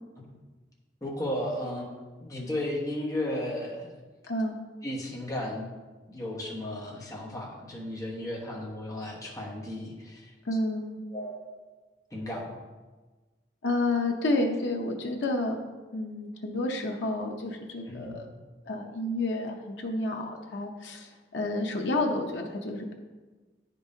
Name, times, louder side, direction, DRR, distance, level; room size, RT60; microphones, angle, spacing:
voice 1, 1.0-1.9 2.2-3.9 4.8-5.7 6.1-10.3 11.1-11.4 12.1-12.6 17.9-18.2, left 1 dB, 20° left, -3 dB, 1.2 m, -34 dB
voice 2, 10.4-11.0 13.6-15.6 15.9-18.3 18.7-22.9, left 2 dB, 85° left, 2 dB, 0.7 m, -30 dB
9.6 x 5.2 x 2.7 m, 1.3 s
head